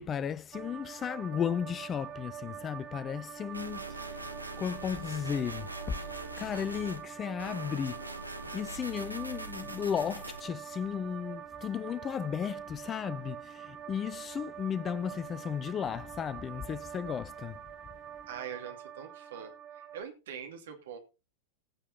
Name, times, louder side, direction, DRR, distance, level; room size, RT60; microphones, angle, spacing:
voice 1, 0.0-4.2 4.6-6.1 6.4-8.0 8.5-17.6, left 8 dB, 25° left, 0.6 m, -35 dB
sound 1, 0.5-20.0, right 9 dB, 30° right, 1.3 m, -45 dB
sound 2, 3.5-7.0 7.4-10.4, right 2 dB, 85° right, 1.2 m, -42 dB
voice 2, 18.3-21.0, right 8 dB, 60° right, 2.6 m, -43 dB
15.5 x 7.3 x 4.0 m
figure-of-eight pair, 90°, 0 cm